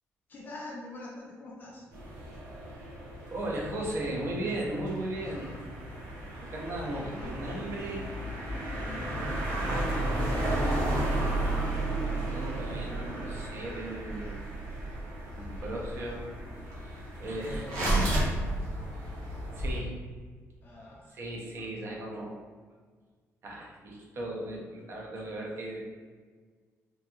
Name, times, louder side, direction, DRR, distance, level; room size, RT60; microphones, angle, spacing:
voice 1, 0.3-1.8 6.7-7.3 8.8-11.3 15.5-15.8 17.3-18.2 20.6-21.2, left 1 dB, 35° left, -4 dB, 0.4 m, -44 dB
sound 1, 1.9-19.8, right 1 dB, 90° right, 0.8 m, -33 dB
voice 2, 3.3-5.5 6.5-8.0 12.3-14.4 15.2-16.2 16.8-17.9 19.6-19.9 21.1-22.4 23.4-25.9, right 1 dB, 50° right, -2 dB, 0.6 m, -36 dB
3.0 x 2.7 x 2.3 m, 1.5 s
cardioid pair, 160°, 5 cm